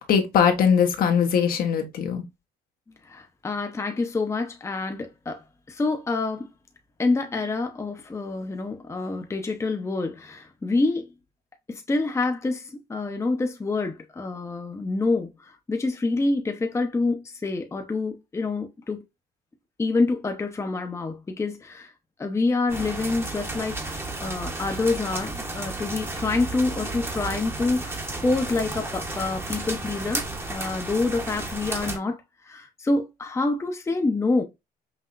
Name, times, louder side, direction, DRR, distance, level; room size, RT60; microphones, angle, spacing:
voice 1, 0.0-2.2, left 7 dB, 60° left, 1.1 m, -21 dB
voice 2, 3.0-6.5 7.0-11.1 11.7-19.0 19.8-21.9 22.2-32.2 32.5-34.4, left 3 dB, 15° left, 0.8 m, -27 dB
sound 1, 22.7-32.0, right 2 dB, 15° right, 1.0 m, -33 dB
5.8 x 2.8 x 2.5 m
cardioid pair, 110°, 17 cm